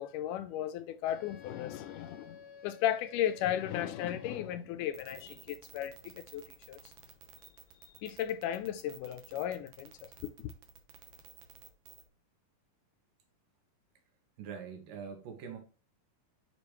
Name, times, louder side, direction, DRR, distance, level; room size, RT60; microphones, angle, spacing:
voice 1, 0.0-6.8 8.0-10.1 10.4-10.5, left 11 dB, 80° left, 2.0 m, -35 dB
Wind instrument woodwind instrument, 1.1-4.6, left 6 dB, 50° left, 1.0 m, -53 dB
sound 1, 4.9-12.1, right 8 dB, 65° right, 2.0 m, -53 dB
voice 2, 14.4-15.6, right 7 dB, 80° right, 3.3 m, -43 dB
8.3 x 5.1 x 3.1 m
omnidirectional pair, 3.9 m